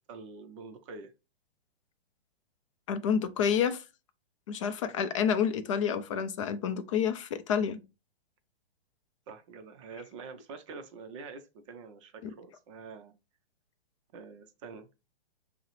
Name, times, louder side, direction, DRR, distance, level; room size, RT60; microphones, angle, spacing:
voice 1, 0.1-1.1 4.8-5.2 9.3-13.1 14.1-14.9, right 4 dB, 30° right, 0.5 m, -46 dB
voice 2, 2.9-3.8 4.5-7.8 12.2-12.3, left 7 dB, 30° left, 0.4 m, -29 dB
5.4 x 2.1 x 3.1 m
hypercardioid pair, 140°, 32 cm